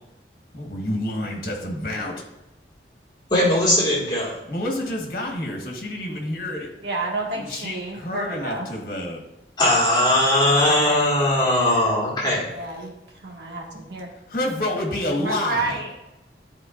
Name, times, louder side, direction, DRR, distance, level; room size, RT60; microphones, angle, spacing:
voice 1, 0.5-2.1 4.5-6.7 7.3-9.2 14.3-15.9, left 1 dB, 50° left, 0 dB, 1.5 m, -28 dB
voice 2, 3.3-4.3 9.6-12.4, left 1 dB, 25° left, -6 dB, 2.0 m, -19 dB
voice 3, 6.8-8.7 12.5-12.9 13.2-14.1 15.2-15.9, right 3 dB, 75° right, -2 dB, 1.8 m, -30 dB
11.0 x 4.7 x 2.6 m, 0.96 s
head